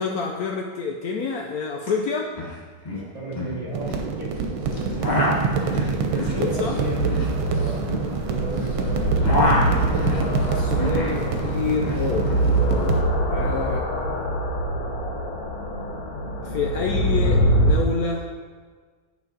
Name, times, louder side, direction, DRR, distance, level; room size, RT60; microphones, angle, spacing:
voice 1, 0.0-2.3 6.1-6.8 10.5-12.3 13.3-13.9 16.4-18.3, left 5 dB, 75° left, 1 dB, 0.8 m, -28 dB
sound 1, 1.8-1.9 2.2-2.5 2.8-4.0 4.7-8.7 9.0-11.2 11.5-12.5, left 1 dB, 25° left, 1.0 m, -27 dB
voice 2, 3.1-4.9 5.7-7.1 7.5-7.8 8.2-9.2, right 2 dB, 30° right, -6 dB, 2.7 m, -34 dB
sound 2, 3.7-13.0, right 4 dB, 85° right, 1.6 m, -27 dB
sound 3, 6.7-17.7, right 1 dB, 55° left, 1.3 m, -24 dB
9.1 x 5.3 x 3.9 m, 1.5 s
omnidirectional pair, 2.2 m